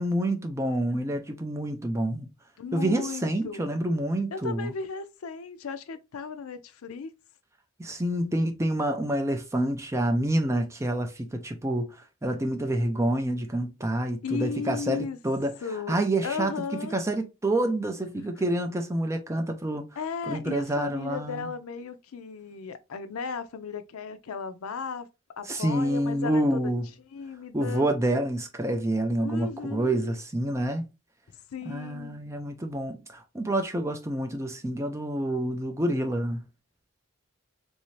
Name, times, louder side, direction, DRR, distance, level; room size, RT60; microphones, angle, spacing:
voice 1, 0.0-2.3 2.7-4.7 7.8-15.5 15.9-16.5 16.9-19.8 20.3-21.5 25.5-26.9 27.5-30.9 31.7-36.5, right 1 dB, 15° right, 0.4 m, -28 dB
voice 2, 2.6-3.7 4.3-7.1 14.2-15.2 15.6-17.0 20.0-25.1 25.4-26.7 27.1-27.9 29.2-30.1 31.5-32.2, left 5 dB, 80° left, 0.5 m, -35 dB
3.2 x 2.7 x 3.1 m
head